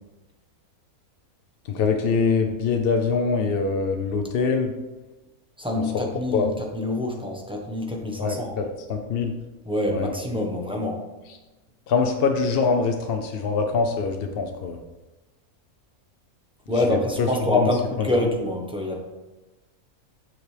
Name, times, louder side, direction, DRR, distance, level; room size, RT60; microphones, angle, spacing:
voice 1, 1.7-4.7 5.8-5.9 6.3-6.5 8.2-9.3 9.9-10.1 11.9-14.8 16.9-17.3 17.5-17.7 18.0-18.1, left 5 dB, 60° left, 5 dB, 0.6 m, -23 dB
voice 2, 5.6-8.6 9.6-11.0 16.7-19.0, left 1 dB, 5° right, 0 dB, 0.8 m, -26 dB
7.1 x 6.0 x 3.3 m, 1.1 s
omnidirectional pair, 1.5 m